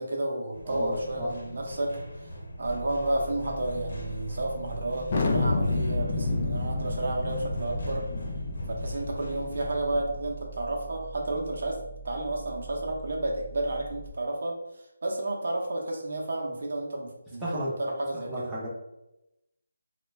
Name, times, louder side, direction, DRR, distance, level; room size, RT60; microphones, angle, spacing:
voice 1, 0.0-2.3 2.6-8.0 8.7-18.5, right 1 dB, 60° right, 0 dB, 0.6 m, -31 dB
sound 1, 0.5-9.7, equal, 60° left, 0.9 m, -42 dB
voice 2, 0.7-1.3 17.4-17.7 18.3-18.7, equal, 5° right, -11 dB, 0.6 m, -33 dB
sound 2, 2.6-14.1, right 5 dB, 85° left, 0.6 m, -44 dB
Thunder, 5.1-10.3, left 3 dB, 35° left, 0.4 m, -30 dB
3.1 x 2.2 x 3.1 m, 0.89 s
figure-of-eight pair, 170°, 0 cm